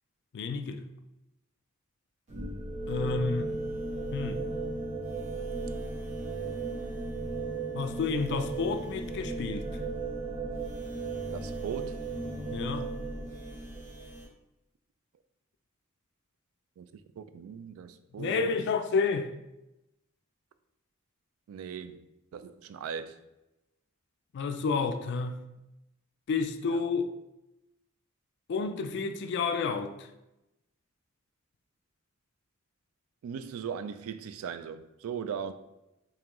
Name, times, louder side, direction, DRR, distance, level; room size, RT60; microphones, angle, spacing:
voice 1, 0.3-0.8 2.9-3.5 4.1-4.5 7.7-9.7 12.5-12.9 18.2-19.3 24.3-25.4 26.3-27.1 28.5-30.1, left 4 dB, 55° left, 0.3 m, -30 dB
sound 1, 2.3-14.3, right 3 dB, 35° right, 1.2 m, -36 dB
voice 2, 11.3-12.1 16.8-16.9 17.2-18.5 21.5-22.1 22.3-23.2 26.7-26.9 33.2-35.5, right 7 dB, 85° right, 0.3 m, -39 dB
3.6 x 2.8 x 3.0 m
head